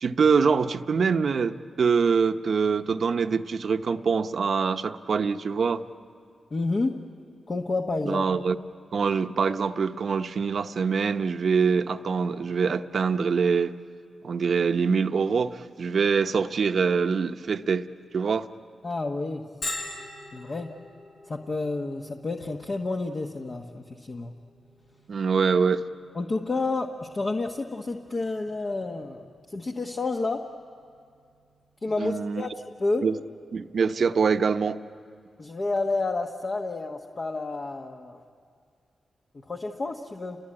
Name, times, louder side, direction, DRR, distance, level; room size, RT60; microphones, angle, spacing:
voice 1, 0.0-5.8 8.0-8.6 8.9-13.7 14.2-17.9 18.1-18.5 25.1-25.8 32.0-32.5 33.0-33.2 33.5-34.8, right 5 dB, 65° right, 9 dB, 0.8 m, -24 dB
voice 2, 6.5-6.9 7.5-8.3 18.8-19.4 20.3-20.7 21.3-24.3 26.1-30.4 31.8-33.0 35.4-38.2 39.3-40.4, left 3 dB, 45° left, 2 dB, 1.3 m, -30 dB
Bell, 19.6-35.1, left 2 dB, 70° left, 5.7 m, -46 dB
29.5 x 21.5 x 8.8 m, 2.2 s
cardioid pair, 65°, 0 cm